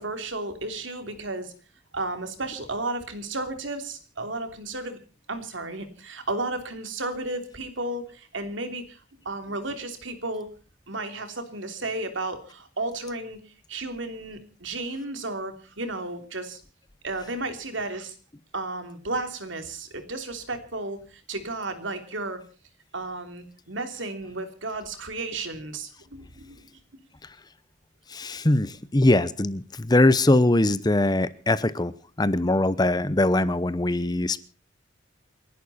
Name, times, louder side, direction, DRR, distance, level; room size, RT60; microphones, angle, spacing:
voice 1, 0.0-1.5 1.9-5.0 5.3-9.0 9.2-10.5 10.9-13.4 13.7-16.6 17.0-18.1 18.5-22.4 22.9-26.7, right 2 dB, 80° right, 7 dB, 3.1 m, -33 dB
voice 2, 28.1-31.9 32.2-34.4, left 2 dB, 20° left, 16 dB, 0.8 m, -22 dB
29.5 x 11.5 x 4.2 m, 0.37 s
head